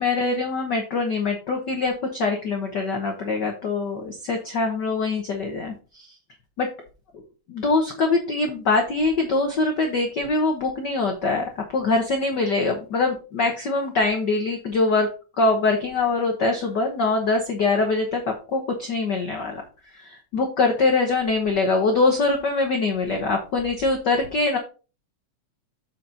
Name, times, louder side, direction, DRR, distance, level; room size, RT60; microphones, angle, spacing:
voice 1, 0.0-6.1 6.6-6.7 7.5-15.1 15.4-18.2 18.5-19.6 19.9-24.6, left 3 dB, 75° left, 3 dB, 1.0 m, -23 dB
7.2 x 5.8 x 3.9 m, 0.34 s
omnidirectional pair, 3.5 m